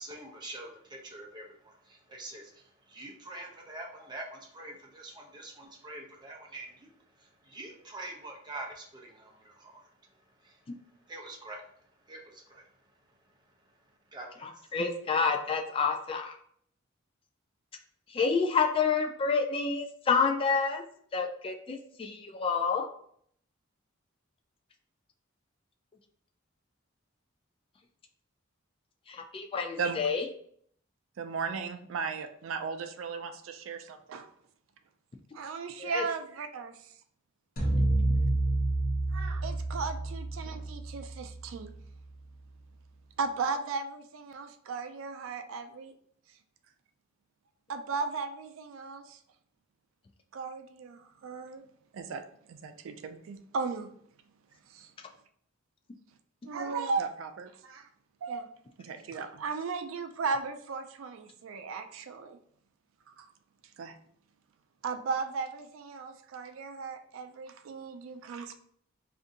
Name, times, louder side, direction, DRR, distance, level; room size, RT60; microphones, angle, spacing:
voice 1, 0.0-2.5 2.9-6.9 7.5-9.8 11.1-11.6 12.1-12.6 14.1-14.4, right 2 dB, 20° right, 0.6 m, -45 dB
voice 2, 14.4-16.3 18.1-20.8 21.1-22.9 29.1-30.2 35.8-36.0, left 5 dB, 25° left, 0.3 m, -29 dB
voice 3, 31.2-34.3 35.3-36.9 39.1-41.7 43.2-45.9 47.7-49.2 50.3-51.6 51.9-52.2 52.5-53.9 54.7-54.9 56.5-57.9 58.2-62.4 63.2-63.3 63.8-63.9 64.8-68.5, right 4 dB, 85° right, 0.4 m, -36 dB
sound 1, 37.6-41.9, right 2 dB, 45° left, 0.9 m, -29 dB
2.6 x 2.5 x 3.8 m
head